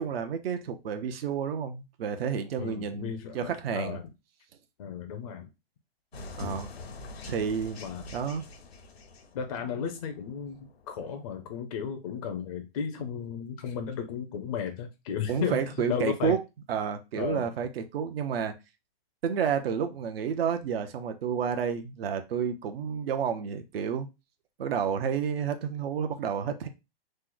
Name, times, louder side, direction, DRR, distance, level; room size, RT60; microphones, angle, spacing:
voice 1, 0.0-4.0 6.2-6.7 7.3-7.8 8.1-8.5 15.3-16.4 16.7-18.5 19.2-24.1 24.6-26.7, right 7 dB, 70° right, 0.7 m, -30 dB
voice 2, 2.6-4.1 4.8-5.5 7.8-8.1 9.3-15.6 15.9-16.4 17.2-17.5, left 7 dB, 35° left, 0.4 m, -34 dB
sound 1, 6.1-11.4, left 3 dB, 85° left, 0.8 m, -45 dB
3.1 x 2.0 x 3.7 m
hypercardioid pair, 150°, 30 cm